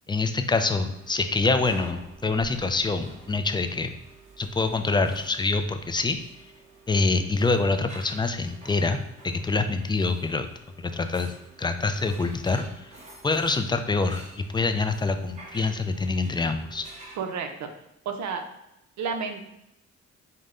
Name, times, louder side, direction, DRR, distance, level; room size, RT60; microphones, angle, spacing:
voice 1, 0.1-3.9 4.4-6.2 6.9-9.0 9.2-10.5 10.8-11.3 11.6-12.9 13.2-16.9, left 3 dB, 15° left, 8 dB, 0.3 m, -25 dB
sound 1, 0.8-17.2, right 2 dB, 25° right, 1.1 m, -49 dB
voice 2, 17.1-17.7 18.0-18.4 19.0-19.5, right 5 dB, 65° right, 5 dB, 0.7 m, -31 dB
5.3 x 2.2 x 3.7 m, 0.87 s
cardioid pair, 90°, 30 cm